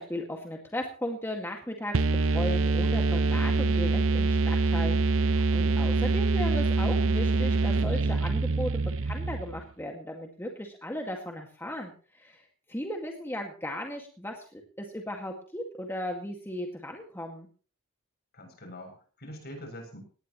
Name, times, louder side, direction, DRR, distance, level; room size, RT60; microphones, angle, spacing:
voice 1, 0.0-2.0 2.3-17.5, left 1 dB, 10° left, 1 dB, 2.0 m, -36 dB
sound 1, 1.9-9.6, right 3 dB, 65° right, 0.7 m, -25 dB
voice 2, 18.3-20.0, equal, 45° left, 4 dB, 7.6 m, -44 dB
19.5 x 18.5 x 3.1 m, 0.40 s
head